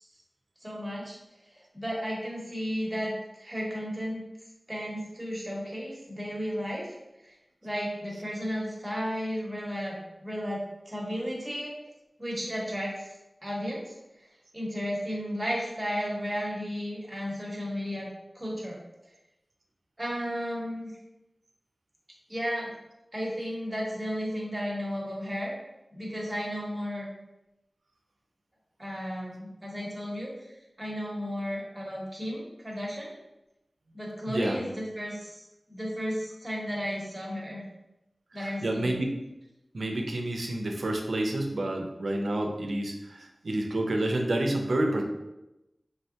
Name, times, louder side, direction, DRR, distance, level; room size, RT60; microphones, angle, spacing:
voice 1, 0.6-1.2 1.7-4.2 4.7-7.3 7.6-11.7 12.2-13.2 13.4-13.9 14.5-18.1 18.3-18.8 20.0-20.9 22.3-22.7 23.1-25.5 25.9-27.1 28.8-30.3 30.8-33.1 33.9-37.6 38.3-38.9, equal, 20° right, -3 dB, 0.9 m, -34 dB
voice 2, 34.3-34.6 38.3-39.1 39.7-45.0, right 1 dB, 85° right, 2 dB, 0.4 m, -29 dB
3.4 x 2.2 x 2.7 m, 0.94 s
wide cardioid pair, 70°, 0 cm